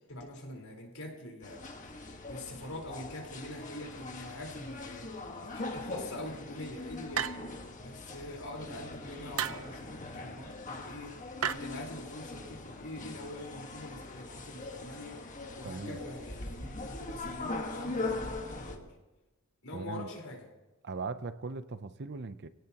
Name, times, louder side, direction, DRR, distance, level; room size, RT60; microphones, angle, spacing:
voice 1, 0.1-1.9 2.3-7.3 7.8-15.2 15.6-18.9 19.6-20.5, left 1 dB, 85° left, 0 dB, 4.3 m, -44 dB
sound 1, 1.4-18.8, left 2 dB, 35° left, 1.5 m, -41 dB
sound 2, 7.2-7.7 9.4-9.7 11.4-11.5, right 8 dB, 90° right, 0.7 m, -33 dB
voice 2, 15.6-16.0 19.7-20.1 20.8-22.5, right 4 dB, 55° right, 12 dB, 0.7 m, -39 dB
26.0 x 17.5 x 3.0 m, 1.1 s
head